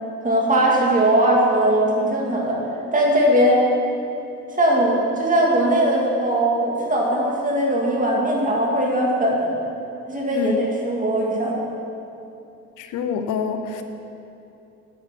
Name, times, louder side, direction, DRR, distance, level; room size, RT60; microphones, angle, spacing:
voice 1, 0.2-2.6 2.9-3.6 4.5-9.5 10.1-11.6, right 1 dB, 25° right, -3 dB, 2.4 m, -19 dB
voice 2, 10.3-10.6 12.8-13.8, left 6 dB, 85° left, 7 dB, 0.8 m, -26 dB
9.3 x 8.0 x 5.9 m, 2.8 s
cardioid pair, 90°, 30 cm